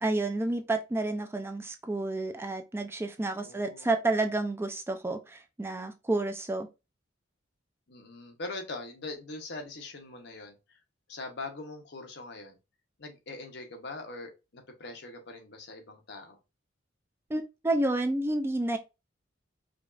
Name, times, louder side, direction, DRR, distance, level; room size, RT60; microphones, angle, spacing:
voice 1, 0.0-6.7 17.3-18.8, right 2 dB, 15° right, 0.3 m, -30 dB
voice 2, 3.4-3.9 7.9-10.8 11.1-12.6 13.0-16.4, left 2 dB, 60° left, 0.9 m, -42 dB
4.9 x 2.4 x 2.4 m
head